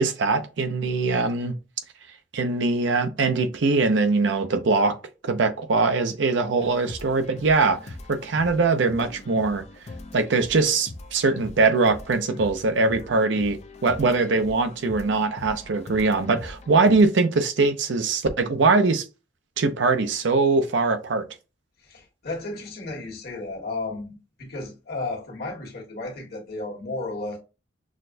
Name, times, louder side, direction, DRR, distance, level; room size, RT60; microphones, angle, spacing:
voice 1, 0.0-1.6 2.3-5.0 5.2-7.8 8.1-9.6 10.1-19.0 19.6-21.2, right 3 dB, 75° right, 0.6 m, -22 dB
sound 1, 6.6-17.1, left 2 dB, 40° left, 0.5 m, -42 dB
voice 2, 21.8-27.4, left 2 dB, 55° left, 1.4 m, -33 dB
6.2 x 2.1 x 2.6 m
head